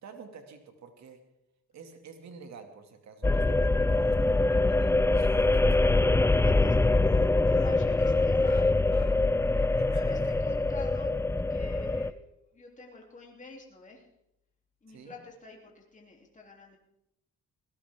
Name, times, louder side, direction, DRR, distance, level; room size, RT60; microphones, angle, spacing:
voice 1, 0.0-1.2 1.7-6.0 9.6-10.4 14.9-15.1, right 5 dB, 65° right, 5 dB, 2.6 m, -49 dB
sound 1, 3.2-12.1, left 2 dB, 10° left, 0.5 m, -24 dB
sound 2, 4.7-5.3 5.6-5.8 6.1-6.3 6.6-9.6 9.9-10.0 10.4-10.5, left 7 dB, 65° left, 5.0 m, -52 dB
voice 2, 6.2-6.8 7.4-8.8 9.7-11.1 11.5-12.2 12.5-14.1 14.8-16.8, left 3 dB, 25° left, 0 dB, 3.3 m, -47 dB
19.5 x 17.0 x 3.8 m, 0.83 s
cardioid pair, 90°, 30 cm